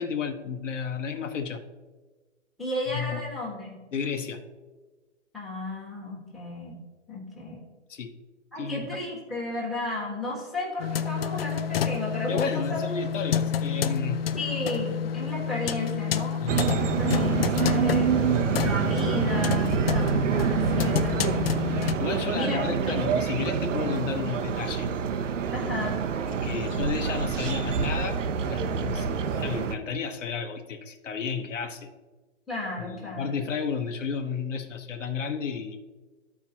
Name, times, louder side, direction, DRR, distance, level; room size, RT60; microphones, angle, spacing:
voice 1, 0.0-1.6 2.9-3.2 3.9-4.4 7.9-8.1 8.6-8.9 12.3-14.2 16.4-16.6 20.8-21.0 22.0-24.9 26.2-28.2 28.5-29.1 29.3-31.9 32.8-35.8, left 5 dB, 80° left, 5 dB, 1.1 m, -32 dB
voice 2, 2.6-3.8 5.3-6.8 7.1-7.6 8.5-12.8 14.3-18.1 18.6-21.4 22.3-23.0 25.5-26.0 26.5-26.8 29.0-29.3 32.5-33.3, left 2 dB, ahead, -4 dB, 1.3 m, -34 dB
sound 1, 10.8-22.0, left 8 dB, 55° left, 0.5 m, -29 dB
sound 2, 16.5-29.7, right 7 dB, 80° right, 0.7 m, -27 dB
13.5 x 4.6 x 2.9 m, 1.3 s
hypercardioid pair, 155°, 37 cm